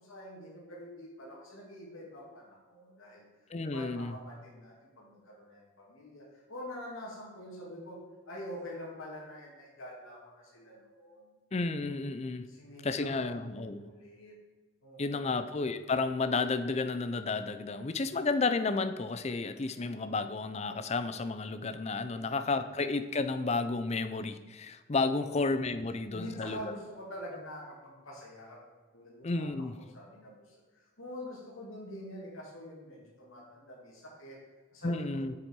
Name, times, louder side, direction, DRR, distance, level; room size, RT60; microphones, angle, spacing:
voice 1, 0.0-3.3 3.6-8.0 8.3-11.4 12.4-14.3 14.8-15.3 22.1-22.6 25.2-25.6 26.1-28.6 28.9-34.4 34.7-35.2, left 1 dB, 80° left, -3 dB, 2.6 m, -46 dB
voice 2, 3.5-4.1 11.5-12.5 12.8-13.8 15.0-26.7 29.2-29.8 34.8-35.3, left 3 dB, 30° left, 10 dB, 0.5 m, -32 dB
8.0 x 6.8 x 4.7 m, 1.3 s
head